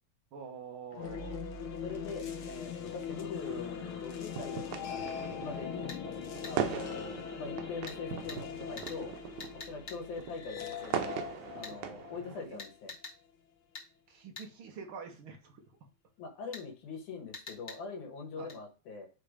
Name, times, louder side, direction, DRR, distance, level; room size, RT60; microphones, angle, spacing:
voice 1, 0.3-1.4 5.6-5.8 6.5-6.6 12.5-12.6 14.1-15.6 18.4-18.5, right 5 dB, 55° right, 4 dB, 1.8 m, -46 dB
sound 1, 0.9-13.1, left 7 dB, 60° left, 1.6 m, -41 dB
voice 2, 1.8-5.0 5.3-5.9 6.5-9.1 9.5-11.2 11.5-12.9 16.2-19.1, left 4 dB, 80° left, 3 dB, 3.0 m, -43 dB
sound 2, 3.4-12.5, right 9 dB, 85° right, 2.3 m, -40 dB
sound 3, 5.9-6.0 6.4-6.6 7.9-8.0 8.3-8.4 8.8-9.0 9.4-10.0 11.6-11.8 12.6-13.2 13.7-13.9 14.4-14.5 16.5-16.7 17.3-17.8 18.5-18.6, left 3 dB, 30° left, 1.5 m, -45 dB
10.5 x 3.5 x 5.1 m, 0.34 s
omnidirectional pair, 3.4 m